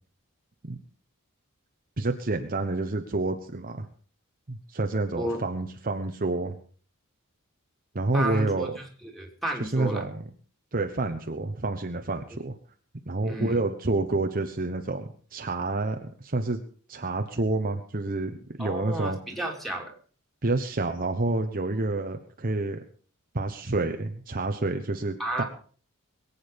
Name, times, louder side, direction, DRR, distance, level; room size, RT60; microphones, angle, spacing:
voice 1, 2.0-3.9 4.5-6.6 7.9-8.7 9.6-10.2 10.7-12.5 13.1-16.6 16.9-19.2 20.4-22.8 23.3-25.4, right 2 dB, 40° right, 5 dB, 1.1 m, -28 dB
voice 2, 8.1-8.7 9.0-10.0 13.2-13.6 18.6-19.9 25.2-25.4, right 1 dB, ahead, -1 dB, 3.2 m, -32 dB
22.5 x 8.7 x 5.3 m, 0.43 s
head